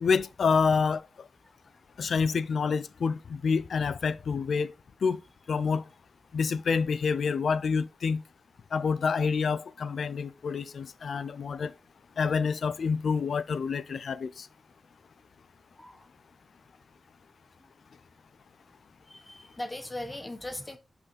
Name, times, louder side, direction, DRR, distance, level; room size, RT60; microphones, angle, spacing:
voice 1, 0.0-1.0 2.0-4.7 5.0-5.2 5.5-5.8 6.3-8.2 8.7-11.7 12.2-14.5, left 5 dB, 75° left, 0.5 m, -27 dB
voice 2, 19.1-20.8, left 1 dB, 15° left, 1.0 m, -39 dB
5.7 x 5.3 x 4.1 m
wide cardioid pair, 110°, 0 cm